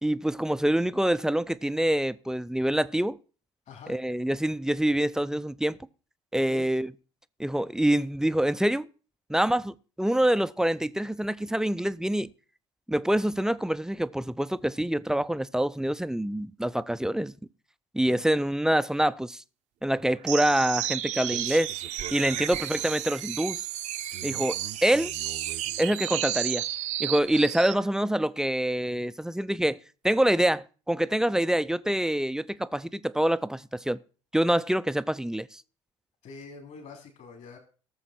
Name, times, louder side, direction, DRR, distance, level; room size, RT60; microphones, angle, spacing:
voice 1, 0.0-3.2 3.9-5.8 6.3-6.9 7.4-8.9 9.3-12.3 12.9-17.3 17.9-19.4 19.8-21.7 22.1-23.6 24.2-25.1 25.8-26.7 27.0-29.8 30.0-34.0 34.3-35.6, right 1 dB, 5° right, 0.5 m, -26 dB
voice 2, 3.7-4.0 6.3-6.7 18.1-18.4 22.4-22.5 36.2-37.6, left 5 dB, 50° left, 3.1 m, -45 dB
sound 1, 20.3-27.8, right 12 dB, 50° right, 0.7 m, -32 dB
18.0 x 7.1 x 4.3 m
figure-of-eight pair, 55°, 15 cm